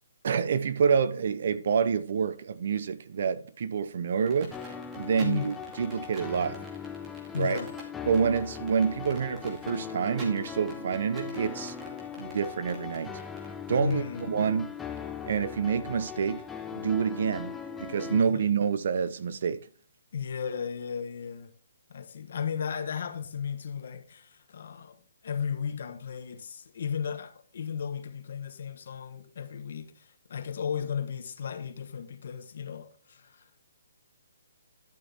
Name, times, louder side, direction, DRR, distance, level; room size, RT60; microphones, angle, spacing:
voice 1, 0.2-4.6 4.9-6.6 7.4-7.6 8.1-11.7 12.2-13.2 13.7-14.7 15.3-16.4 16.7-19.6, right 6 dB, 55° right, 0.8 m, -27 dB
sound 1, 4.3-14.2, right 2 dB, 15° right, 2.5 m, -48 dB
sound 2, 4.5-18.2, left 7 dB, 5° left, 0.6 m, -40 dB
voice 2, 5.2-5.5 7.3-7.7 13.8-14.5 18.1-18.5 20.1-21.5 21.9-33.6, left 7 dB, 55° left, 1.4 m, -35 dB
11.5 x 6.6 x 3.6 m
hypercardioid pair, 165°, 0 cm